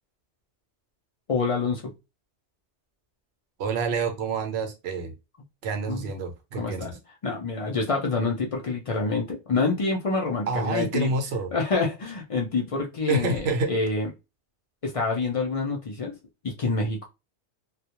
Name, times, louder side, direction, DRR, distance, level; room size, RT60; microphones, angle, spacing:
voice 1, 1.3-1.9 5.9-6.1 6.6-6.9 7.2-11.1 11.5-14.1 14.8-16.1 16.4-17.1, left 3 dB, 50° left, 0.4 m, -27 dB
voice 2, 3.6-5.1 5.6-7.0 10.5-11.5 13.1-13.7, right 3 dB, 70° right, 0.9 m, -28 dB
2.3 x 2.1 x 2.8 m
omnidirectional pair, 1.2 m